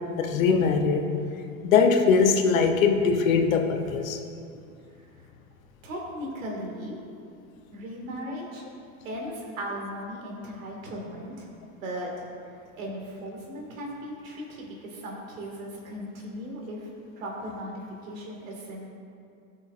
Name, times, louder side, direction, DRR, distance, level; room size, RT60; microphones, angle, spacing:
voice 1, 0.2-1.1 1.6-4.2, left 5 dB, 85° left, 5 dB, 0.9 m, -21 dB
voice 2, 5.8-7.0 7.7-8.6 9.0-11.5 11.8-12.3 12.7-16.9 17.2-18.9, equal, 85° right, -2 dB, 2.0 m, -37 dB
14.0 x 6.3 x 2.5 m, 2.5 s
hypercardioid pair, 105°, 39 cm